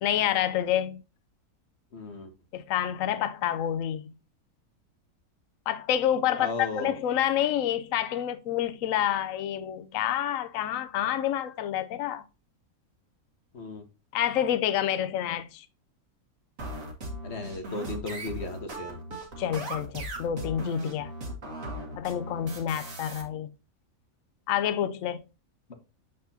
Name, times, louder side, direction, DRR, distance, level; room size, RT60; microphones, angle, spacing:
voice 1, 0.0-1.0 2.5-4.1 5.7-12.2 14.1-15.7 19.4-21.1 22.0-23.5 24.5-25.2, left 10 dB, 70° left, 1.0 m, -28 dB
voice 2, 1.9-2.3 6.4-7.0 13.5-13.8 17.2-19.0, left 3 dB, 50° left, 1.4 m, -35 dB
sound 1, 16.6-23.2, right 1 dB, 60° right, 2.2 m, -38 dB
7.9 x 5.1 x 2.8 m
omnidirectional pair, 1.5 m